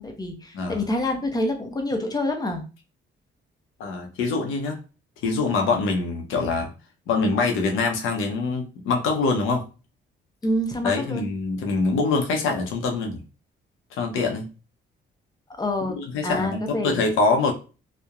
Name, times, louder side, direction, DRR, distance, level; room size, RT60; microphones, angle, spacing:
voice 1, 0.0-2.6 10.4-11.3 15.5-16.0 16.2-17.1, left 1 dB, 20° left, 0.6 m, -27 dB
voice 2, 3.8-4.8 5.2-6.7 7.1-9.7 10.8-13.2 13.9-14.5 16.0-17.5, left 3 dB, 85° left, 0.7 m, -24 dB
2.8 x 2.1 x 2.4 m
cardioid pair, 90°, 20 cm